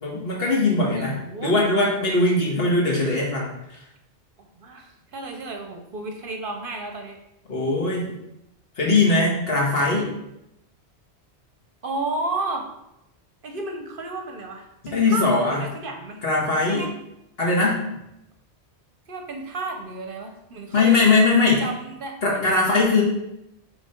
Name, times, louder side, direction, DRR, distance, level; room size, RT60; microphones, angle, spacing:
voice 1, 0.0-1.2 1.4-3.5 7.5-8.1 8.8-10.1 14.9-15.6 16.2-16.8 17.4-17.9 20.7-21.6 22.2-23.0, left 3 dB, 60° left, -3 dB, 1.7 m, -20 dB
voice 2, 0.9-1.5 4.6-7.2 11.8-12.7 13.4-16.2 16.7-16.9 19.1-21.0 21.3-22.4, right 3 dB, 55° right, 4 dB, 0.8 m, -32 dB
7.1 x 3.3 x 4.3 m, 0.86 s
omnidirectional pair, 1.1 m